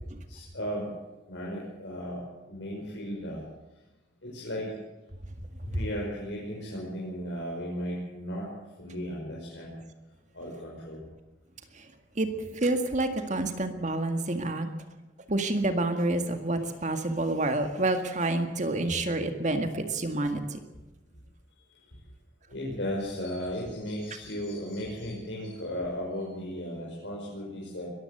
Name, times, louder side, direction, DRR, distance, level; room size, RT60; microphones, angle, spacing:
voice 1, 0.3-0.9 1.3-3.5 4.2-4.7 5.6-8.5 8.8-9.7 10.3-11.1 21.7-21.8 22.5-27.9, equal, 80° left, -3 dB, 5.8 m, -35 dB
voice 2, 12.2-14.7 15.3-20.6, right 2 dB, 40° right, 7 dB, 1.9 m, -28 dB
22.0 x 15.0 x 7.9 m, 1.1 s
head